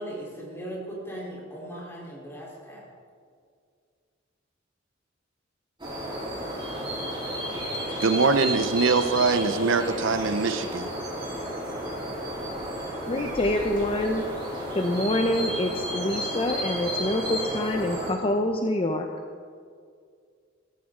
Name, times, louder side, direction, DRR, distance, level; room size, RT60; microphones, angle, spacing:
voice 1, 0.0-2.9, right 1 dB, 15° left, -4 dB, 3.7 m, -38 dB
sound 1, 5.8-18.1, equal, 25° right, 3.7 m, -32 dB
voice 2, 8.0-10.9, right 4 dB, 70° right, 10 dB, 0.7 m, -23 dB
voice 3, 13.1-14.2 14.7-19.1, left 1 dB, 30° left, 4 dB, 0.7 m, -26 dB
15.5 x 14.0 x 3.8 m, 2.1 s
head